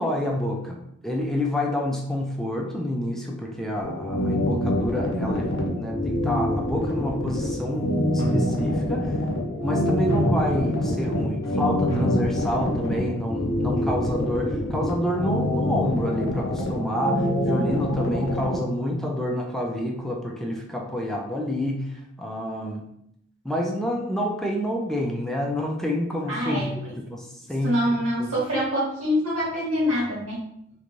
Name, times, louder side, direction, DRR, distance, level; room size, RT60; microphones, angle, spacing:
voice 1, 0.0-9.2 9.6-22.8 23.4-27.8 28.2-28.3, left 1 dB, ahead, 0 dB, 0.3 m, -28 dB
sound 1, 3.8-18.6, left 1 dB, 65° left, 0.6 m, -25 dB
sound 2, 8.2-8.9 9.8-10.8 11.4-11.5 11.9-12.9, right 1 dB, 15° left, 0.9 m, -29 dB
voice 2, 26.3-26.7 27.6-30.4, equal, 75° right, -6 dB, 1.2 m, -25 dB
2.5 x 2.2 x 3.0 m, 0.73 s
head